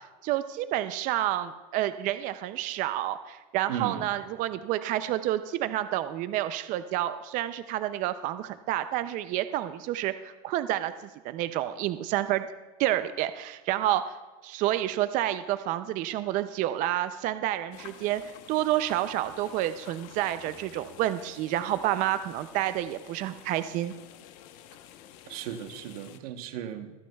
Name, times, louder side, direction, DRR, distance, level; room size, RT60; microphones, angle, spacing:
voice 1, 0.2-10.9 11.2-12.5 12.8-14.0 14.4-18.2 18.5-23.9, right 13 dB, 45° right, 12 dB, 0.4 m, -29 dB
voice 2, 3.7-4.1 25.3-26.9, right 9 dB, 90° right, 8 dB, 1.0 m, -36 dB
sound 1, 17.7-26.2, left 11 dB, 65° left, 0.9 m, -50 dB
25.5 x 9.3 x 2.3 m, 1.2 s
supercardioid pair, 145°, 19 cm